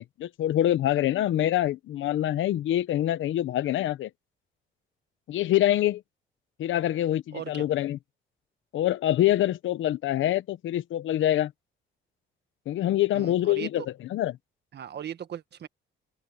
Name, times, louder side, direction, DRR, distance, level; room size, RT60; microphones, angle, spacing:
voice 1, 0.0-4.1 5.3-6.0 6.6-8.0 8.7-11.5 12.7-13.8 14.1-14.4, left 13 dB, 75° left, 1.1 m, -25 dB
voice 2, 7.3-7.7 13.1-13.9 14.7-15.7, right 9 dB, 60° right, 1.6 m, -38 dB
open air
cardioid pair, 90°, 20 cm